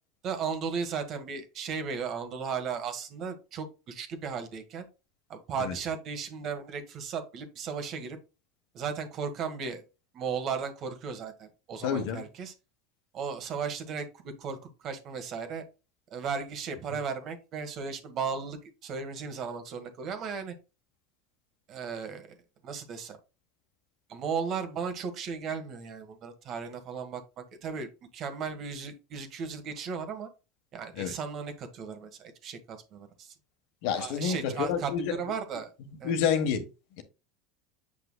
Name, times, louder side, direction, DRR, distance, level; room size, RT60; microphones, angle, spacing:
voice 1, 0.2-4.8 5.3-8.2 8.7-9.8 10.1-12.5 13.1-14.6 14.8-15.6 16.1-20.5 21.7-22.4 22.6-23.2 24.1-30.3 30.7-33.3 34.0-35.7 36.0-36.2, right 6 dB, 45° right, 1.5 m, -36 dB
voice 2, 11.8-12.2 31.0-31.1 33.8-35.2 36.0-36.6, left 7 dB, 65° left, 1.3 m, -28 dB
7.5 x 5.5 x 2.3 m
supercardioid pair, 120°, 0 cm